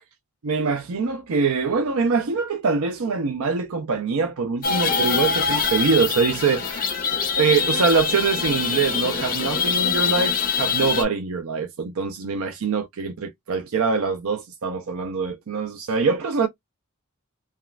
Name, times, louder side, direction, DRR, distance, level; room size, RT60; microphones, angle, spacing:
voice 1, 0.4-7.0 7.4-16.5, right 5 dB, 80° right, 0.5 m, -24 dB
sound 1, 4.6-11.0, left 5 dB, 45° left, 1.0 m, -24 dB
3.5 x 2.2 x 2.3 m
head